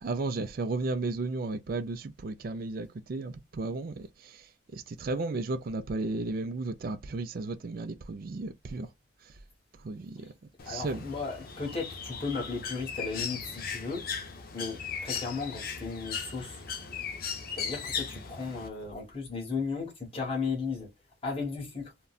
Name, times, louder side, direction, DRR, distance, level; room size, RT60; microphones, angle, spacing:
voice 1, 0.0-4.5 4.7-8.9 9.8-10.3 10.7-11.0, right 3 dB, 50° right, 0.4 m, -34 dB
Bird, 10.6-18.7, left 6 dB, 50° left, 0.6 m, -38 dB
voice 2, 10.7-14.0 14.5-16.6 17.6-20.9 21.2-21.9, left 4 dB, 30° left, 1.3 m, -35 dB
3.7 x 2.2 x 2.3 m
head